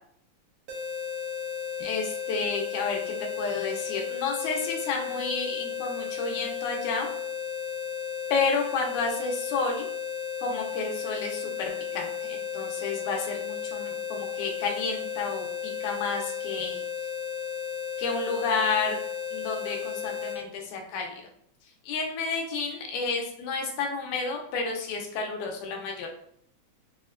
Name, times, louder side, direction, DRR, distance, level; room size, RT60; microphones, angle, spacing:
sound 1, 0.7-20.4, left 8 dB, 70° right, 1.5 m, -34 dB
voice 1, 1.8-7.1 8.3-9.9 10.4-15.5 15.8-16.8 18.0-19.0 19.3-21.3 21.8-26.1, left 4 dB, 85° left, 1 dB, 2.2 m, -31 dB
5.1 x 2.1 x 2.4 m, 0.66 s
omnidirectional pair, 3.4 m